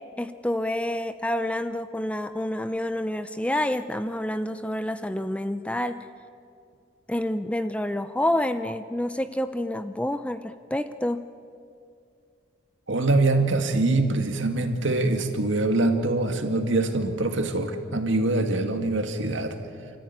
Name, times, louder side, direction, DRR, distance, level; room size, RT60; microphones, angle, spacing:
voice 1, 0.2-6.0 7.1-11.2, left 1 dB, 5° left, 10 dB, 0.5 m, -28 dB
voice 2, 12.9-19.6, right 2 dB, 70° right, 5 dB, 2.0 m, -24 dB
28.5 x 14.0 x 9.5 m, 2.4 s
head